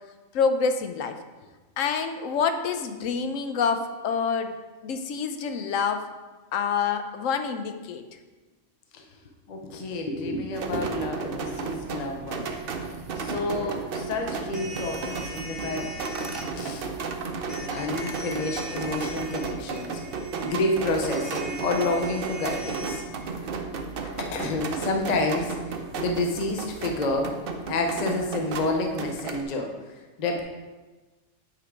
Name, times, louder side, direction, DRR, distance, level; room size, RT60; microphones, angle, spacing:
voice 1, 0.3-1.2 1.8-4.5 4.8-6.0 6.5-8.1, left 5 dB, 80° left, 8 dB, 1.0 m, -27 dB
voice 2, 9.5-12.5 13.2-16.9 17.7-20.0 20.4-23.0 24.2-27.3 27.7-30.4, left 2 dB, 40° left, 3 dB, 0.7 m, -29 dB
sound 1, 10.5-29.4, right 4 dB, 55° right, 0.7 m, -33 dB
sound 2, 14.5-16.5 17.5-23.0, equal, ahead, 1.1 m, -41 dB
8.6 x 3.4 x 5.0 m, 1.2 s
omnidirectional pair, 1.4 m